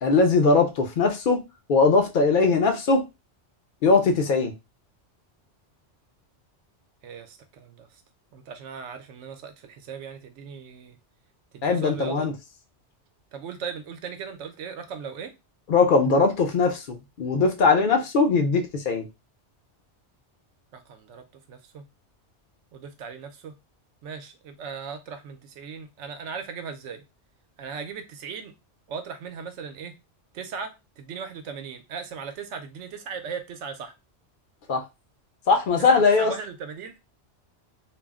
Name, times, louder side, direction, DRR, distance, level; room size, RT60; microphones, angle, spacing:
voice 1, 0.0-1.4 1.7-3.0 3.8-4.5 11.6-12.3 15.7-19.1 34.7-34.8 35.5-36.3, left 4 dB, 55° left, 0.6 m, -20 dB
voice 2, 7.0-7.9 8.3-11.0 11.5-12.3 13.3-15.3 20.7-21.8 22.7-23.5 24.0-27.0 27.6-28.5 28.9-29.9 30.3-33.9 35.8-37.0, right 6 dB, 85° right, 0.9 m, -38 dB
2.4 x 2.0 x 3.5 m
omnidirectional pair, 1.2 m